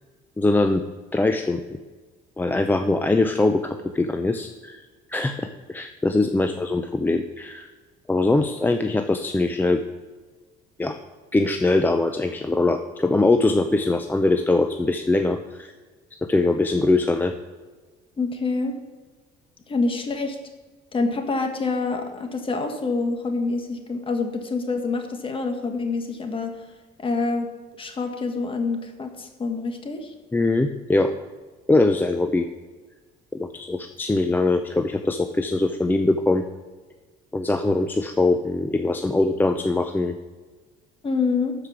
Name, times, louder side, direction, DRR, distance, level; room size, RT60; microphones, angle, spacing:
voice 1, 0.4-0.8 1.1-1.6 2.4-4.8 5.1-7.7 8.1-9.8 10.8-11.0 11.3-15.7 16.3-17.3 30.3-31.1 31.7-32.5 33.4-36.4 37.3-40.1, left 2 dB, 10° left, 6 dB, 0.5 m, -22 dB
voice 2, 18.2-18.7 19.7-20.4 20.9-26.5 27.0-27.5 27.8-30.1 41.0-41.5, left 3 dB, 30° left, 5 dB, 1.5 m, -26 dB
12.5 x 4.9 x 6.1 m, 1.3 s
cardioid pair, 110°, 17 cm